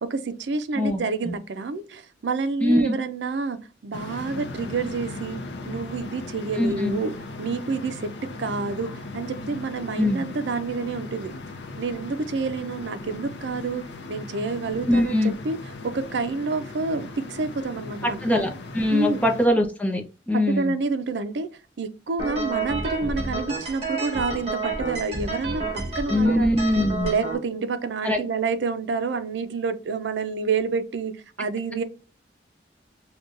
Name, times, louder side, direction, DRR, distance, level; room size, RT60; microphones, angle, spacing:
voice 1, 0.0-7.1 7.4-8.1 8.4-11.4 11.8-15.1 15.4-15.6 15.8-18.3 18.9-19.2 20.5-21.5 21.8-26.5 27.0-31.8, right 4 dB, 75° right, 0.5 m, -28 dB
voice 2, 0.8-1.3 2.6-3.0 6.6-7.0 10.0-10.2 14.9-15.3 18.0-20.0 20.3-20.7 26.1-27.1 28.0-28.2, left 1 dB, 10° left, 0.6 m, -22 dB
sound 1, 3.9-19.5, left 2 dB, 70° left, 0.6 m, -38 dB
sound 2, 22.2-27.3, right 3 dB, 35° right, 1.6 m, -30 dB
5.3 x 2.2 x 2.5 m
head